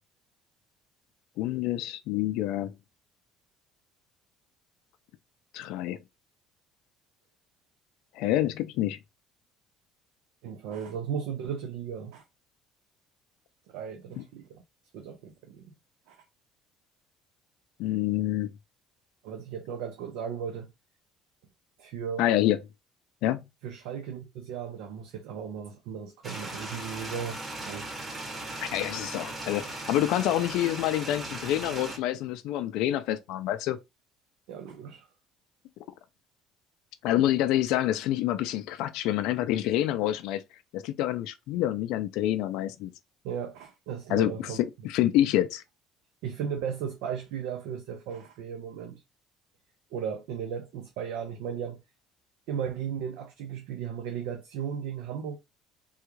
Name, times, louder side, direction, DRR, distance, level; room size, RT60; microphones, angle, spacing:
voice 1, 1.4-2.7 5.5-6.0 8.2-9.0 17.8-18.5 22.2-22.6 23.2-23.4 28.7-33.8 37.0-40.4 40.7-42.9 44.1-44.5 44.8-45.6, left 13 dB, 75° left, 0.4 m, -27 dB
voice 2, 10.4-12.2 13.7-14.6 14.9-15.7 16.1-16.2 19.2-20.7 21.8-22.3 23.6-27.9 34.5-35.1 43.2-44.6 46.2-49.0 49.9-51.8 52.5-55.4, right 7 dB, 85° right, 0.6 m, -36 dB
sound 1, 26.2-32.0, right 2 dB, 20° right, 1.1 m, -38 dB
3.4 x 2.3 x 3.0 m
cardioid pair, 120°, 0 cm